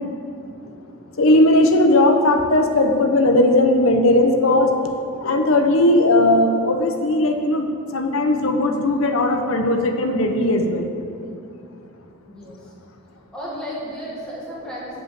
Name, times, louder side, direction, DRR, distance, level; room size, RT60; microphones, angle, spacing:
voice 1, 1.2-4.8 5.1-10.9, left 1 dB, 65° left, 5 dB, 0.8 m, -17 dB
voice 2, 12.3-12.7 13.3-15.0, equal, 5° left, -7 dB, 2.0 m, -33 dB
7.9 x 5.5 x 7.6 m, 2.6 s
head